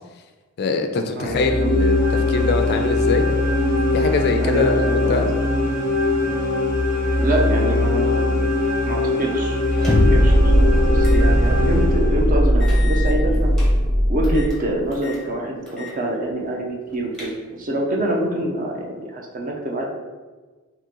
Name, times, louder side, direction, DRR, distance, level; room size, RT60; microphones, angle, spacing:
voice 1, 0.6-3.3 3.9-5.3, left 4 dB, 50° left, 6 dB, 0.3 m, -23 dB
voice 2, 1.1-1.7 4.4-5.2 7.2-8.3 8.9-9.6 10.1-13.6 14.1-19.9, right 1 dB, 40° right, 0 dB, 0.6 m, -25 dB
sound 1, 1.2-12.6, left 2 dB, 65° right, 1.4 m, -21 dB
sound 2, 9.7-10.3 11.0-11.3 11.7-11.8 12.6-13.7 14.2-14.6 14.9-15.2 15.7-16.0 16.3-16.4 16.9-17.7, left 2 dB, 5° left, 0.7 m, -27 dB
sound 3, 9.9-14.8, equal, 85° right, 0.8 m, -18 dB
3.7 x 2.9 x 3.0 m, 1.3 s
head